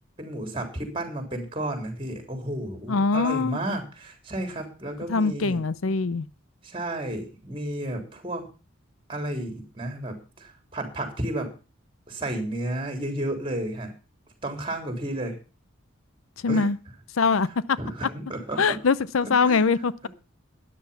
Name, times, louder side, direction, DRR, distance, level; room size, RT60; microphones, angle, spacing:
voice 1, 0.2-5.6 6.6-8.4 9.1-11.5 12.1-13.9 14.4-15.3 16.5-16.7 17.3-17.4 17.8-18.6 19.2-19.6 20.0-20.1, right 1 dB, 25° right, 3.6 m, -32 dB
voice 2, 2.9-3.6 5.1-6.3 16.4-16.8 17.2-17.5 18.6-20.1, left 4 dB, 85° left, 0.6 m, -23 dB
13.0 x 10.0 x 5.6 m
head